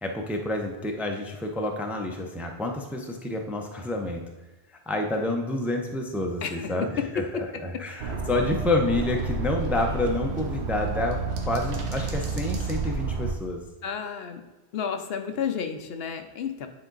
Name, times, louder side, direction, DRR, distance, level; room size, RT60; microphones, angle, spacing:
voice 1, 0.0-4.2 4.9-11.2 11.5-13.6, left 2 dB, ahead, 2 dB, 0.5 m, -28 dB
voice 2, 6.4-6.9 7.1-7.4 7.7-7.8 13.8-14.4 14.7-16.7, left 7 dB, 70° left, 7 dB, 0.9 m, -31 dB
sound 1, 8.0-13.3, right 4 dB, 85° right, 1.1 m, -30 dB
9.0 x 3.8 x 3.9 m, 1.2 s
omnidirectional pair, 1.1 m